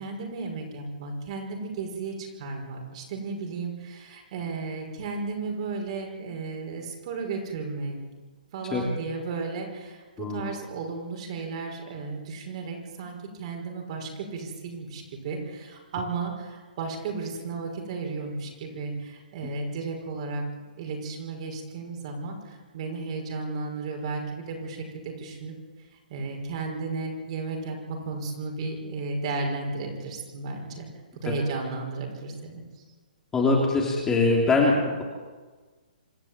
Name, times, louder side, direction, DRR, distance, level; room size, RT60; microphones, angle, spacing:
voice 1, 0.0-8.0 8.5-20.4 20.8-25.6 26.1-30.9 31.2-32.6, right 4 dB, 40° right, 2 dB, 5.8 m, -34 dB
voice 2, 33.3-35.0, left 3 dB, 10° left, -2 dB, 3.4 m, -22 dB
26.5 x 12.0 x 9.1 m, 1.3 s
hypercardioid pair, 160°, 5 cm